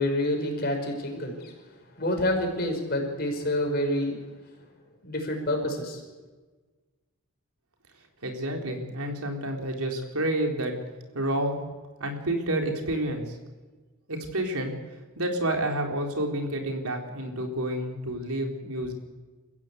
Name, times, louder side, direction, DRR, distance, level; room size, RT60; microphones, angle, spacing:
voice 1, 0.0-1.5 2.0-4.2 5.0-6.0, left 1 dB, 45° left, 3 dB, 5.7 m, -28 dB
voice 2, 8.2-10.7 11.1-11.6 12.0-13.3 14.1-14.7 15.2-18.9, right 1 dB, 85° right, 2 dB, 4.1 m, -29 dB
29.5 x 15.5 x 8.2 m, 1.3 s
head